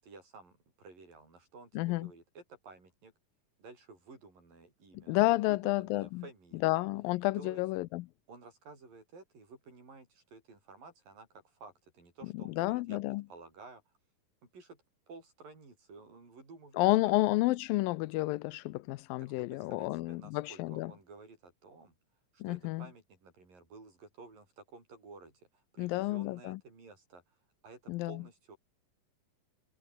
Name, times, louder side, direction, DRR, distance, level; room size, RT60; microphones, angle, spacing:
voice 1, 0.0-3.1 3.6-5.2 5.5-6.8 7.3-7.6 8.3-13.8 14.4-17.1 19.2-22.0 22.3-27.4 27.6-28.6, right 3 dB, 70° right, 9.8 m, -53 dB
voice 2, 1.8-2.1 4.9-6.2 6.6-8.1 12.3-13.2 16.8-20.9 22.4-22.9 25.8-26.6 27.9-28.2, left 19 dB, 85° left, 2.4 m, -30 dB
omnidirectional pair, 4.1 m